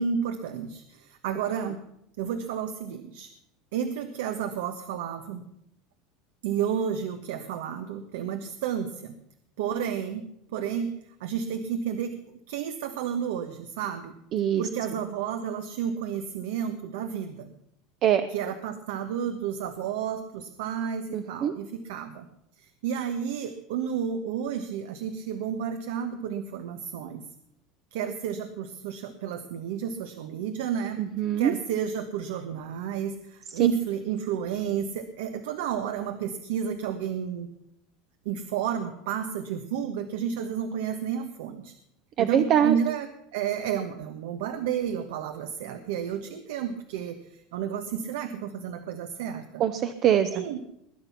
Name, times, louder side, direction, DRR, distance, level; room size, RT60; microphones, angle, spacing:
voice 1, 0.0-1.8 2.2-3.3 3.7-5.4 6.4-9.1 9.6-12.2 12.5-14.1 14.6-17.5 18.3-22.3 22.6-27.2 27.9-31.0 31.4-37.5 38.2-41.7 42.2-49.6 50.3-50.6, right 8 dB, 75° right, 8 dB, 1.3 m, -31 dB
voice 2, 14.3-14.6 18.0-18.2 21.1-21.5 31.0-31.5 42.2-42.7 49.6-50.3, right 9 dB, 30° right, 11 dB, 0.7 m, -23 dB
20.5 x 10.0 x 5.9 m, 0.79 s
supercardioid pair, 175°, 0 cm